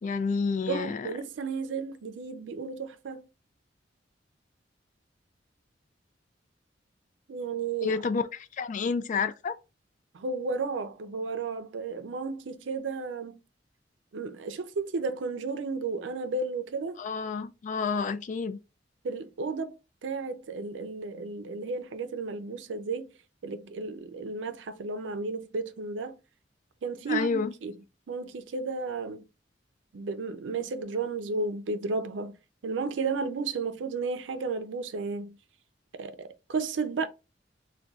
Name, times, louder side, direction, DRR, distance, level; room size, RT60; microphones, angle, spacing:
voice 1, 0.0-1.1 7.8-9.6 17.0-18.6 27.1-27.5, left 5 dB, 45° left, 0.3 m, -29 dB
voice 2, 0.6-3.3 7.3-8.0 10.1-13.4 14.1-17.0 19.0-19.8 20.0-23.1 23.4-26.2 26.8-27.8 28.1-29.3 29.9-32.4 32.6-35.4 35.9-37.1, right 4 dB, 85° right, 0.4 m, -33 dB
3.9 x 2.2 x 2.3 m
head